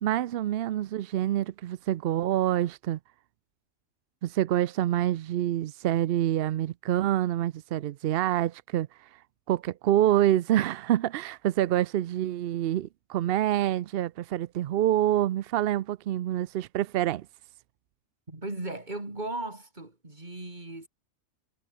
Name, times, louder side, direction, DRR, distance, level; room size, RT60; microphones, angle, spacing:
voice 1, 0.0-3.0 4.2-8.9 9.5-17.3, right 12 dB, 70° right, 0.5 m, -26 dB
voice 2, 18.3-20.9, right 2 dB, 30° right, 3.9 m, -37 dB
omnidirectional pair, 1.5 m